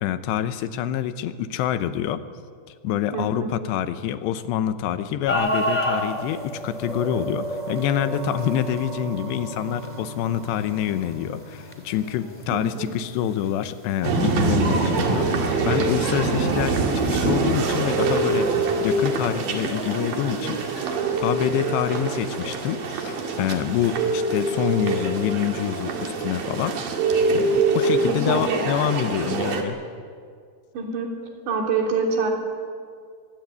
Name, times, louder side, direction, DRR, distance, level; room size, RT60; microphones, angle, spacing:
voice 1, 0.0-2.2 2.8-16.8 17.1-26.8 27.7-29.8, left 10 dB, 85° left, 11 dB, 3.1 m, -26 dB
voice 2, 3.1-3.6 12.5-13.0 28.0-28.4 30.7-31.1 31.5-32.3, right 4 dB, 90° right, 1 dB, 5.6 m, -26 dB
sound 1, 5.3-20.8, equal, 5° left, 1.9 m, -35 dB
sound 2, 6.1-14.7 15.0-15.1, right 2 dB, 15° right, 1.5 m, -37 dB
sound 3, 14.0-29.6, right 3 dB, 60° right, 3.8 m, -24 dB
24.0 x 20.0 x 8.3 m, 2.1 s
omnidirectional pair, 4.9 m